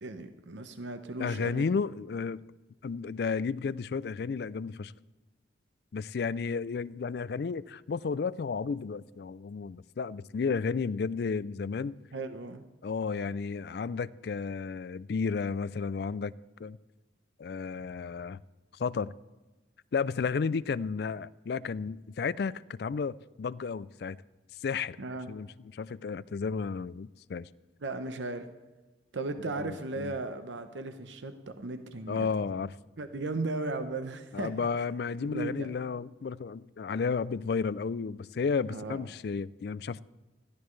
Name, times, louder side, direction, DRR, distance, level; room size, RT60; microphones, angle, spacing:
voice 1, 0.0-1.7 12.1-12.6 20.7-20.8 25.0-25.3 27.8-28.5 29.1-32.3 33.0-34.7 35.2-35.7 38.7-39.0, right 2 dB, 80° right, 0.8 m, -36 dB
voice 2, 1.2-2.4 2.8-4.9 5.9-12.0 12.8-16.3 16.6-16.8 17.4-18.4 18.8-19.1 19.9-24.2 24.6-25.0 25.3-25.5 25.7-27.5 29.5-30.1 32.1-32.7 34.3-40.0, left 5 dB, 60° left, 0.3 m, -32 dB
20.5 x 14.0 x 3.2 m
head